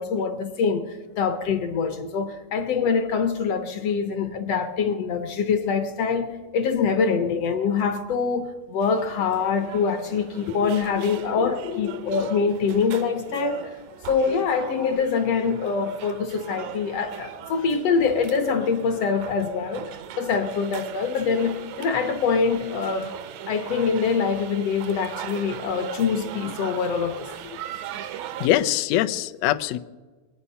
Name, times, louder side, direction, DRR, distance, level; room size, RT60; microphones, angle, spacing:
voice 1, 0.0-13.8 14.1-19.9 20.2-23.1 23.5-27.3, left 5 dB, 65° left, 1.7 m, -24 dB
sound 1, 8.8-28.5, right 10 dB, 75° right, 1.6 m, -39 dB
voice 2, 11.7-12.2 28.4-29.8, left 13 dB, 85° left, 1.5 m, -24 dB
24.0 x 9.0 x 5.6 m
omnidirectional pair, 3.8 m